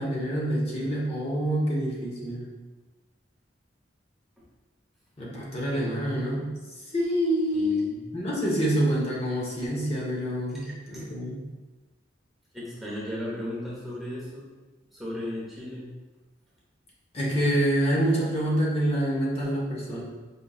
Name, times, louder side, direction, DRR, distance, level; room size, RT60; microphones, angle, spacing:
voice 1, 0.0-2.4 5.2-6.5 6.9-7.9 8.1-11.4 17.1-20.0, equal, 30° left, -6 dB, 0.9 m, -26 dB
voice 2, 7.5-8.0 10.6-11.1 12.5-14.5 14.9-15.9, left 1 dB, ahead, -8 dB, 0.8 m, -36 dB
5.0 x 3.0 x 2.3 m, 1.2 s
head